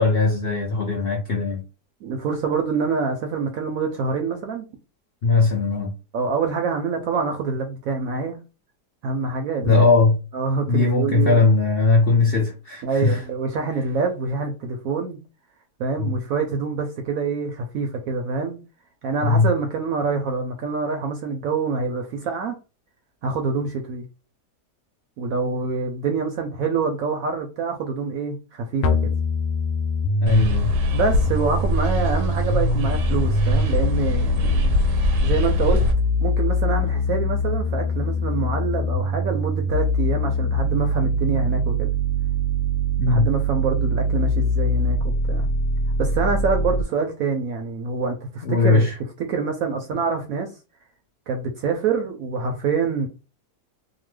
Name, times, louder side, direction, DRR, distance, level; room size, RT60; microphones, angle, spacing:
voice 1, 0.0-1.6 5.2-5.9 9.6-10.2 10.7-13.2 16.0-16.1 19.2-19.5 30.2-30.7 43.0-43.3 48.4-49.0, left 3 dB, 65° left, 0.5 m, -19 dB
voice 2, 2.0-4.7 6.1-8.4 9.0-9.9 10.3-11.4 12.8-15.2 15.8-18.6 19.0-22.5 23.2-24.0 25.2-29.1 30.9-34.7 35.2-35.8 36.2-41.9 43.1-45.0 45.3-45.5 46.0-48.9 49.2-50.5 51.3-53.1, right 4 dB, 70° right, 0.8 m, -26 dB
sound 1, 28.8-46.8, left 1 dB, 85° left, 1.2 m, -23 dB
sound 2, 30.3-35.9, equal, 90° right, 1.3 m, -24 dB
2.9 x 2.1 x 3.2 m
omnidirectional pair, 1.9 m